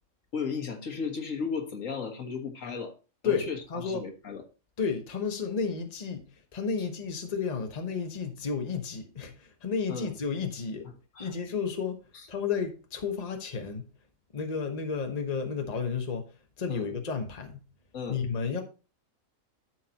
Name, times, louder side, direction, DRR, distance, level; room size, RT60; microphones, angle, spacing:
voice 1, 0.3-2.9 3.2-4.4 9.9-10.1 11.1-11.3 16.7-16.9 17.9-18.2, left 5 dB, 75° left, 1.8 m, -35 dB
voice 2, 3.2-4.0 4.8-6.2 6.5-10.9 11.2-12.0 12.3-13.9 14.3-16.3 16.6-17.6 18.1-18.6, left 5 dB, 30° left, 1.1 m, -32 dB
13.0 x 4.5 x 2.9 m
omnidirectional pair, 1.4 m